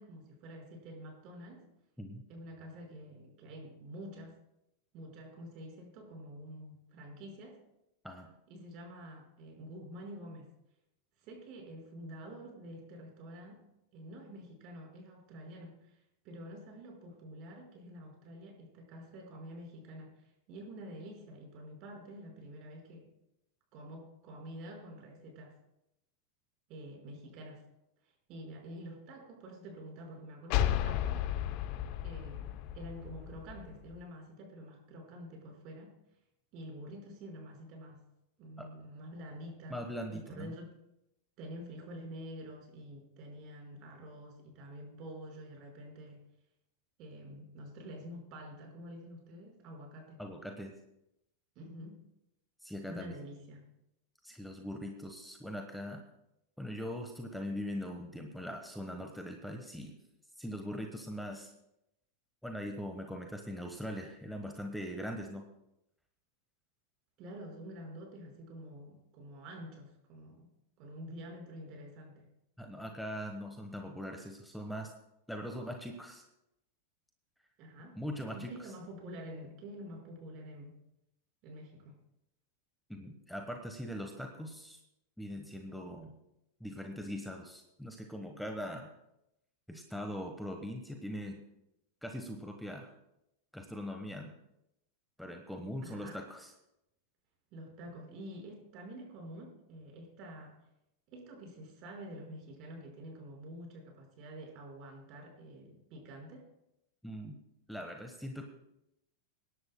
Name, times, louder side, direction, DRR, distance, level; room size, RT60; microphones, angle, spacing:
voice 1, 0.0-1.6 2.3-4.4 4.9-7.6 8.5-10.5 11.2-13.6 13.9-16.0 16.2-23.1 23.7-25.5 26.7-27.6 28.3-31.2 32.0-35.9 36.5-38.0 38.4-39.8 40.1-40.6 41.4-46.2 47.0-50.2 51.5-52.0 52.9-53.6 67.2-70.5 70.8-72.3 77.6-78.0 78.3-80.8 81.4-82.0 95.8-96.2 97.5-100.6 101.1-106.5, equal, 50° right, 0 dB, 5.1 m, -48 dB
sound 1, 30.5-34.0, left 11 dB, 50° left, 0.7 m, -34 dB
voice 2, 39.7-40.5 50.2-50.7 52.6-53.2 54.2-56.0 56.6-60.0 60.4-61.5 62.4-65.4 72.6-74.9 75.3-76.2 77.9-78.7 82.9-84.8 85.2-86.2 86.6-88.9 89.7-91.4 92.0-92.9 93.5-94.3 95.2-96.5 107.0-107.4 107.7-108.5, equal, ahead, 3 dB, 1.2 m, -41 dB
26.0 x 11.0 x 2.2 m, 0.86 s
hypercardioid pair, 100°, 0 cm